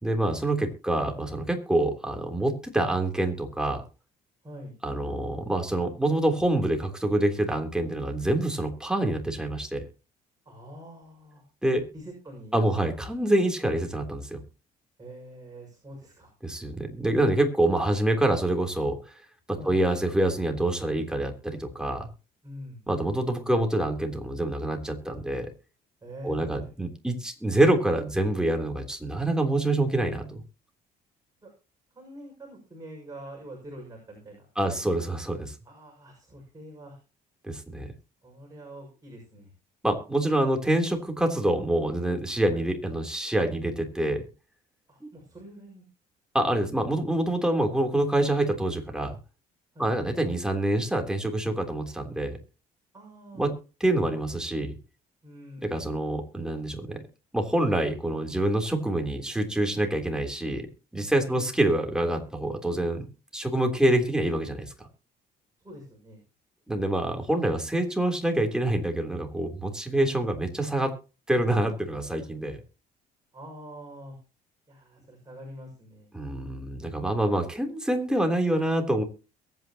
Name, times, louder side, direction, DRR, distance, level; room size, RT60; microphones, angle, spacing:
voice 1, 0.0-3.8 4.8-9.8 11.6-11.9 12.5-14.4 16.4-19.0 19.7-22.1 22.9-25.5 26.2-30.4 34.6-35.5 37.4-37.9 39.8-44.2 46.3-49.1 49.8-52.4 53.4-53.6 53.8-54.7 55.6-57.0 57.3-60.7 60.9-63.1 63.3-64.7 66.7-70.9 71.3-72.6 76.1-79.0, right 1 dB, 5° right, 4 dB, 3.5 m, -26 dB
voice 2, 4.4-4.7 10.4-11.4 11.9-12.8 15.0-16.3 19.6-19.7 22.4-22.8 26.0-26.7 31.4-31.5 31.9-34.7 35.6-37.0 38.2-39.5 42.5-42.6 44.9-45.8 49.7-49.9 52.9-53.6 55.2-56.0 61.3-61.6 63.8-63.9 65.6-66.2 73.3-74.2 74.7-76.2, equal, 20° right, 0 dB, 6.3 m, -45 dB
22.5 x 9.3 x 3.0 m, 0.33 s
cardioid pair, 110°, 17 cm